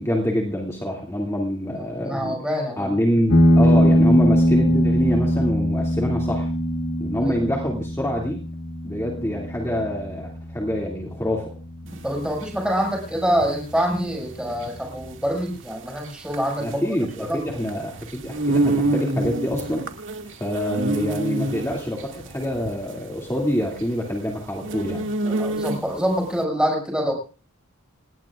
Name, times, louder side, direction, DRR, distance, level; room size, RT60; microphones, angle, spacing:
voice 1, 0.0-2.4 2.8-6.5 7.0-8.4 8.8-11.6 16.6-19.8 20.3-25.0, equal, 15° left, -2 dB, 2.5 m, -26 dB
voice 2, 1.8-2.9 7.2-7.4 12.0-17.5 24.8-24.9 25.2-27.1, equal, 5° right, 1 dB, 6.0 m, -26 dB
sound 1, 3.3-12.3, equal, 70° left, 2.1 m, -21 dB
sound 2, 11.9-26.1, right 2 dB, 60° right, 2.1 m, -28 dB
28.0 x 19.0 x 2.5 m, 0.36 s
head